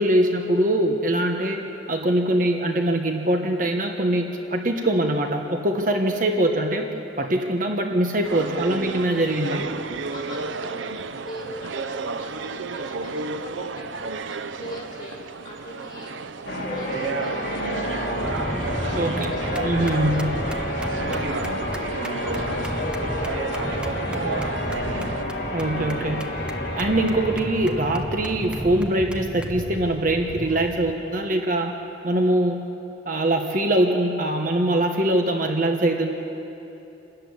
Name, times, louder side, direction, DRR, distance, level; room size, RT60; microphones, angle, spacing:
voice 1, 0.0-1.6 1.9-6.8 7.2-9.6 18.9-19.4 19.6-20.3 25.5-26.2 26.8-31.7 32.0-32.7 33.1-36.2, right 1 dB, 45° right, 3 dB, 1.3 m, -23 dB
sound 1, 8.2-25.2, right 4 dB, 85° right, 0.7 m, -32 dB
voice 2, 9.9-18.1 18.4-24.2, left 1 dB, 25° left, -3 dB, 5.5 m, -40 dB
Church bell, 16.5-28.7, left 1 dB, 55° left, 3.0 m, -30 dB
sound 2, 18.2-30.9, equal, 5° right, 0.7 m, -33 dB
27.0 x 13.5 x 9.8 m, 3.0 s
head